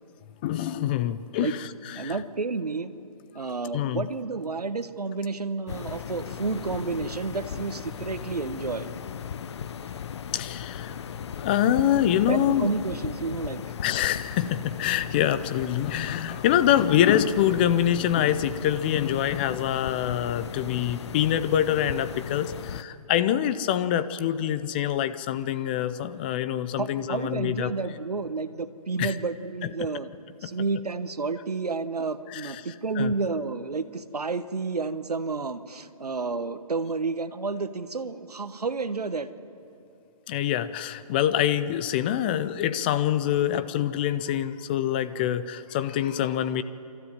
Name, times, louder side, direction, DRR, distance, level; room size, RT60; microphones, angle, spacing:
voice 1, 0.4-2.2 3.7-4.1 10.3-11.0 11.4-12.7 13.8-27.7 29.0-29.1 29.6-29.7 30.4-30.5 32.3-32.6 33.0-33.1 40.3-46.6, left 11 dB, 15° left, 13 dB, 0.4 m, -25 dB
voice 2, 1.9-2.9 3.3-8.9 12.2-13.8 26.8-30.1 30.4-39.3, right 4 dB, 80° right, 11 dB, 1.3 m, -30 dB
sound 1, 5.7-22.8, left 8 dB, 45° left, 0.8 m, -37 dB
29.0 x 13.0 x 9.8 m, 2.7 s
figure-of-eight pair, 150°, 20 cm